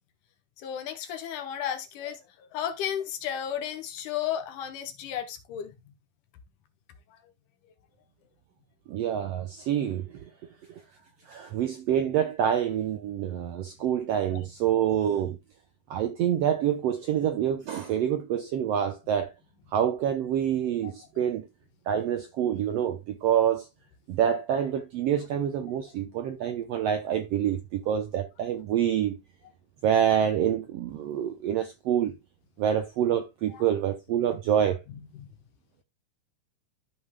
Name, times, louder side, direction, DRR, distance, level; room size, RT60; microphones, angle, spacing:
voice 1, 0.6-5.8 7.1-7.2 14.3-14.4 14.8-14.9 20.8-20.9 33.5-33.7 35.1-35.3, left 9 dB, 75° left, 2.6 m, -34 dB
voice 2, 8.9-10.1 11.3-15.4 15.9-19.3 19.7-21.4 21.9-23.7 24.1-29.2 29.8-32.1 32.6-34.8, right 9 dB, 75° right, 1.5 m, -26 dB
13.5 x 5.4 x 2.2 m
omnidirectional pair, 3.7 m